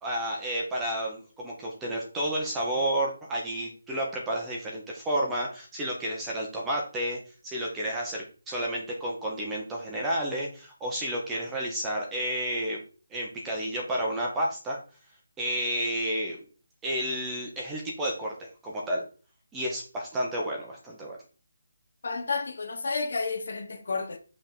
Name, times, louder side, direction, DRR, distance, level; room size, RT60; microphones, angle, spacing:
voice 1, 0.0-12.8 13.1-14.8 15.4-16.4 16.8-19.0 19.5-21.2, right 1 dB, 5° right, 0.8 m, -31 dB
voice 2, 22.0-24.2, left 4 dB, 50° left, 1.4 m, -31 dB
5.6 x 3.5 x 5.8 m
hypercardioid pair, 175°, 0 cm